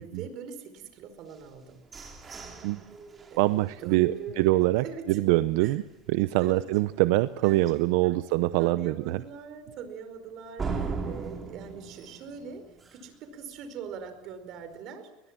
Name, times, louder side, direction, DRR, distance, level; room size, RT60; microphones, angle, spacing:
voice 1, 0.0-1.8 3.3-5.2 5.6-5.7 6.2-6.6 7.4-8.2 8.6-15.1, right 5 dB, 55° right, 9 dB, 4.9 m, -43 dB
sound 1, 1.3-5.2 5.6-5.7 6.1-6.5 6.9-7.0 7.5-7.6 10.6-13.2, right 5 dB, 25° right, 4.4 m, -38 dB
voice 2, 3.4-5.8 6.1-9.2, right 18 dB, 80° right, 13 dB, 0.7 m, -24 dB
22.0 x 21.5 x 7.5 m, 1.0 s
cardioid pair, 135°, 0 cm